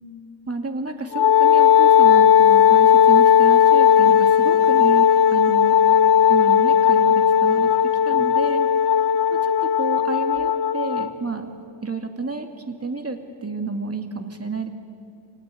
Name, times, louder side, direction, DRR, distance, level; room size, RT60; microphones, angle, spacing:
voice 1, 0.5-5.8 6.3-8.7 9.3-11.5 11.8-14.7, right 4 dB, 30° right, 5 dB, 2.5 m, -30 dB
Wind instrument woodwind instrument, 1.1-11.1, left 8 dB, 60° left, 0.9 m, -16 dB
26.5 x 18.5 x 9.7 m, 2.4 s
wide cardioid pair, 90°, 45 cm